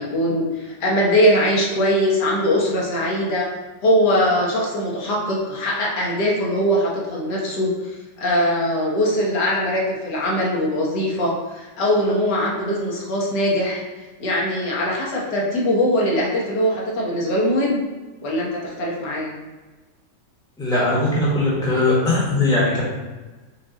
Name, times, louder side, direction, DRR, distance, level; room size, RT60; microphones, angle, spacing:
voice 1, 0.0-3.5 3.8-13.8 14.2-17.9 18.2-19.3, equal, 70° left, -3 dB, 1.6 m, -21 dB
voice 2, 20.6-22.8, left 2 dB, 5° left, -7 dB, 1.1 m, -19 dB
5.3 x 2.5 x 3.9 m, 1.2 s
omnidirectional pair, 1.9 m